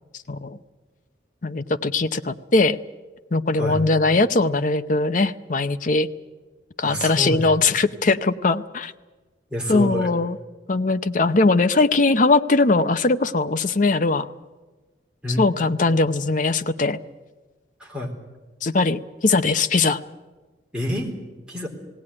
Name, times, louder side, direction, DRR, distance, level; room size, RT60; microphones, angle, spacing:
voice 1, 1.4-2.8 3.3-6.1 6.8-8.9 9.7-10.4 10.7-14.3 15.4-17.0 18.6-20.0, left 3 dB, 45° left, 11 dB, 0.7 m, -20 dB
voice 2, 6.8-7.5 9.5-10.1 15.2-15.4 17.8-18.1 20.7-21.1 21.5-21.7, equal, 5° right, -2 dB, 3.7 m, -27 dB
18.5 x 17.5 x 9.8 m, 1.2 s
head